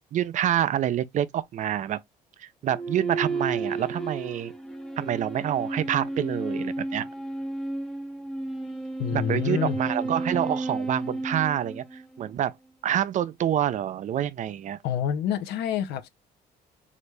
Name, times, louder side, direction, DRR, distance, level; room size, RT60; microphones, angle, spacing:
voice 1, 0.0-2.0 2.4-4.5 5.0-7.1 9.1-12.6 12.8-14.8, right 11 dB, 45° right, 0.4 m, -27 dB
sound 1, 2.7-12.3, right 2 dB, 5° left, 0.6 m, -32 dB
voice 2, 9.0-9.8 14.8-16.1, left 9 dB, 80° left, 0.6 m, -27 dB
3.2 x 2.4 x 3.2 m
cardioid pair, 110°, 17 cm